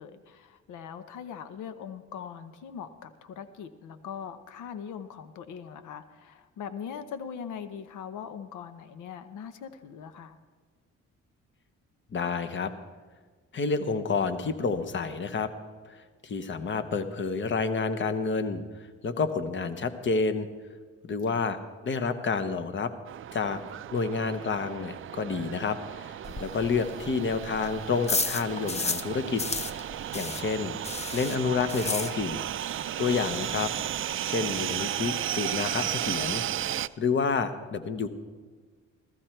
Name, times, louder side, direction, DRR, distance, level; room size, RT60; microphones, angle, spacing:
voice 1, 0.0-10.4 21.3-21.5, left 7 dB, 80° left, 11 dB, 0.9 m, -41 dB
voice 2, 12.1-12.7 13.5-15.5 15.8-18.6 19.0-20.5 21.0-21.6 21.8-22.9 23.3-23.6 23.9-29.4 29.7-29.8 30.1-30.8 31.1-32.4 33.0-33.7 34.2-36.4 36.7-38.1, left 5 dB, 40° left, 10 dB, 1.0 m, -29 dB
sound 1, 23.1-36.9, right 11 dB, 45° right, 0.4 m, -34 dB
sound 2, 26.2-29.1 29.4-32.6 32.8-32.9 33.3-33.4 33.5-34.0, left 3 dB, 20° left, 0.7 m, -33 dB
15.0 x 14.5 x 4.5 m, 1.5 s
cardioid pair, 90°, 30 cm